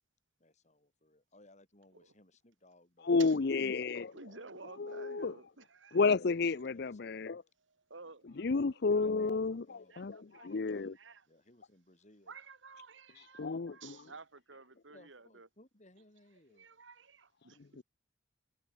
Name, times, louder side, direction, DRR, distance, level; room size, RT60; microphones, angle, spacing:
voice 1, 0.4-3.1 3.4-3.8 6.6-7.2 9.7-10.0 11.3-12.3 14.9-16.7, left 1 dB, 40° left, 5.6 m, -63 dB
voice 2, 3.0-4.1 4.8-5.3 5.9-7.4 8.4-11.0 13.4-13.7 17.8-17.9, left 4 dB, 60° left, 0.6 m, -31 dB
voice 3, 4.1-6.0 7.9-8.3 8.7-9.3 9.9-11.3 12.3-15.5 16.5-17.6, right 4 dB, 85° right, 2.3 m, -53 dB
head